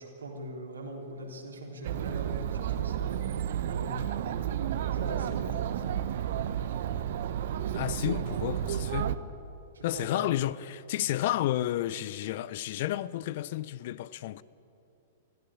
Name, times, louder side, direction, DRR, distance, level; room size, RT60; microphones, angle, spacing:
voice 1, 0.0-4.3 4.9-5.8 9.7-10.3, right 1 dB, 80° right, 3.7 m, -42 dB
Chatter, 1.8-9.2, right 10 dB, 55° right, 0.9 m, -31 dB
voice 2, 7.7-9.1 9.8-14.4, left 14 dB, 50° left, 0.6 m, -31 dB
21.0 x 14.5 x 8.7 m
figure-of-eight pair, 105°, 0 cm